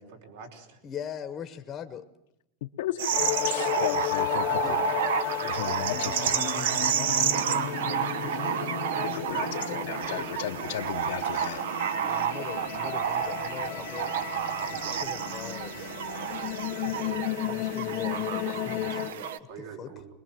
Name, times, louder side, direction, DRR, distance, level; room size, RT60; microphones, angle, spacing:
voice 1, 0.0-0.8 6.1-7.2 8.2-8.7 19.5-20.1, right 3 dB, 65° right, 4 dB, 4.8 m, -43 dB
voice 2, 0.8-2.1 4.5-6.2 6.9-7.1 9.3-10.3 11.9-14.1 14.7-15.9 16.7-20.0, left 8 dB, 20° left, 8 dB, 1.0 m, -42 dB
voice 3, 2.6-3.1 3.4-4.8 5.5-6.3 8.7-11.7 12.1-12.2, left 13 dB, 70° left, 3 dB, 0.8 m, -35 dB
sound 1, 3.0-19.4, right 9 dB, 85° right, 1.2 m, -30 dB
sound 2, 3.1-19.1, left 16 dB, 40° left, 0.8 m, -34 dB
22.5 x 21.0 x 7.5 m, 0.83 s
supercardioid pair, 170°, 0 cm